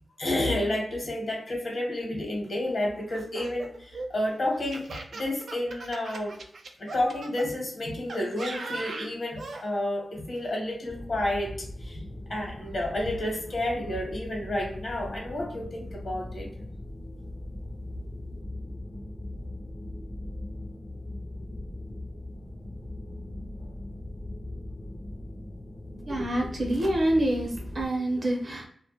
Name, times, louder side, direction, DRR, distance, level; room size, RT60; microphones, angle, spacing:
voice 1, 0.2-6.4 6.8-12.0 12.3-16.5, left 1 dB, 60° left, 0 dB, 0.9 m, -30 dB
Laughter, 3.1-7.5 8.1-9.6, right 3 dB, 80° right, 0.3 m, -39 dB
sound 1, 10.9-27.9, left 1 dB, 30° left, 0.4 m, -40 dB
voice 2, 26.1-28.7, right 1 dB, 50° right, 1 dB, 0.7 m, -26 dB
2.2 x 2.1 x 2.8 m, 0.64 s
cardioid pair, 70°, 0 cm